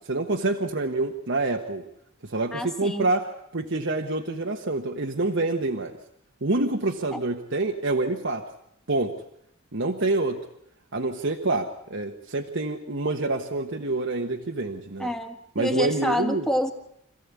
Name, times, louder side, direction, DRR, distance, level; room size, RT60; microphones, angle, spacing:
voice 1, 0.0-1.8 2.2-6.0 6.4-8.4 8.9-9.2 9.7-10.4 10.9-15.1 15.5-16.5, right 2 dB, 60° right, 3 dB, 1.3 m, -27 dB
voice 2, 2.5-3.1 7.1-7.2 15.0-16.7, equal, 5° left, 5 dB, 1.7 m, -28 dB
26.5 x 15.5 x 8.4 m, 0.77 s
head